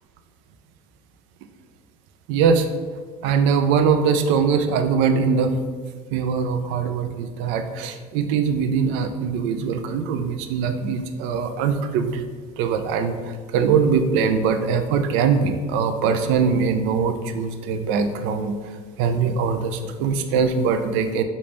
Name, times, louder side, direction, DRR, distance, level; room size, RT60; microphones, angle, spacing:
voice 1, 2.3-2.7 3.2-5.5 6.1-12.2 12.6-18.6 19.0-21.2, right 6 dB, 65° right, 8 dB, 0.4 m, -22 dB
3.1 x 2.7 x 3.4 m, 1.5 s
supercardioid pair, 90°, 21 cm